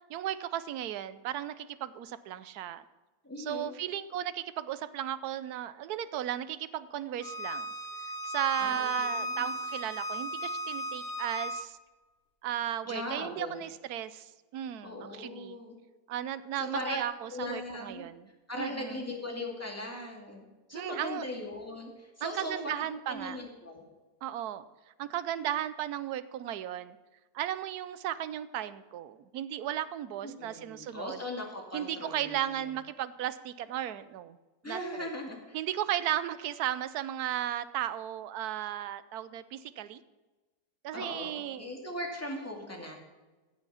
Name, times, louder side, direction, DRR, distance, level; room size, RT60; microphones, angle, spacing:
voice 1, 0.1-2.8 3.4-7.7 8.2-11.8 12.4-15.6 16.1-18.3 18.6-19.0 20.7-21.2 22.2-23.4 24.2-24.6 25.0-27.0 27.3-31.2 31.7-34.4 34.6-35.1 35.5-40.0 40.8-41.7, right 11 dB, 80° right, 14 dB, 1.2 m, -35 dB
voice 2, 3.2-3.7 8.6-9.6 12.8-13.6 14.8-15.8 16.6-17.0 17.3-18.0 18.5-22.7 23.1-23.8 30.2-32.5 34.6-35.6 40.9-41.3 41.6-42.9, left 1 dB, 10° left, 0 dB, 2.2 m, -39 dB
Bowed string instrument, 7.2-11.6, right 1 dB, 35° left, 1.2 m, -36 dB
16.5 x 6.4 x 5.6 m, 1.2 s
omnidirectional pair, 1.7 m